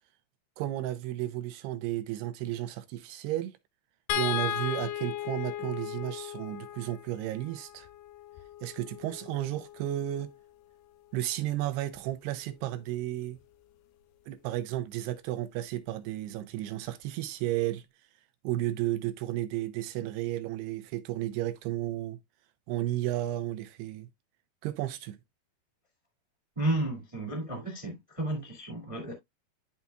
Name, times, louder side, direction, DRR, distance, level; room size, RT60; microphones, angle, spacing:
voice 1, 0.6-3.5 4.1-7.9 8.6-10.3 11.1-13.4 14.3-17.8 18.4-22.2 22.7-24.1 24.6-25.2, right 14 dB, 85° right, 2.8 m, -33 dB
sound 1, 4.1-10.4 11.9-12.1 12.5-12.6, left 11 dB, 80° left, 2.8 m, -37 dB
voice 2, 26.5-29.1, right 1 dB, 15° right, 1.3 m, -32 dB
12.0 x 4.2 x 2.3 m
omnidirectional pair, 4.7 m